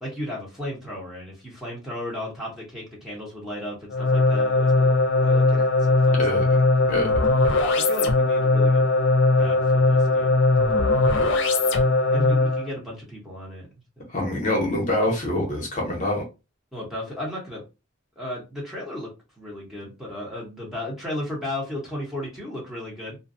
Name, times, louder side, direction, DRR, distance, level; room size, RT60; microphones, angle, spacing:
voice 1, 0.0-6.2 7.7-8.8 9.4-10.4 10.7-13.7 14.0-14.1 16.7-17.6 18.2-19.1 19.4-23.2, left 1 dB, ahead, 0.9 m, -35 dB
sound 1, 3.9-12.7, left 2 dB, 60° left, 0.5 m, -19 dB
voice 2, 6.2-6.6 6.9-7.1 14.1-16.2, left 1 dB, 40° left, 0.8 m, -25 dB
2.5 x 2.2 x 2.6 m
head